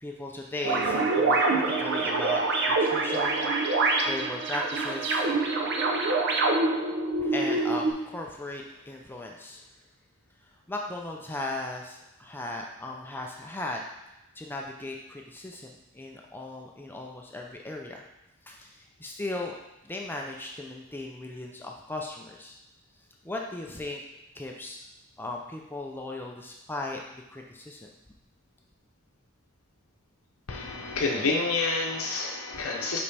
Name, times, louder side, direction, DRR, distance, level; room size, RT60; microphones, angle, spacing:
voice 1, 0.0-5.4 7.2-9.6 10.7-13.8 14.4-18.0 18.4-19.6 19.8-22.6 23.2-24.0 24.3-24.8 25.2-27.9, left 2 dB, 10° left, 0 dB, 0.4 m, -37 dB
sound 1, 0.6-7.9, right 3 dB, 55° right, 0.7 m, -25 dB
voice 2, 30.5-33.0, left 3 dB, 70° left, 0 dB, 0.7 m, -28 dB
5.4 x 5.2 x 3.4 m, 0.90 s
head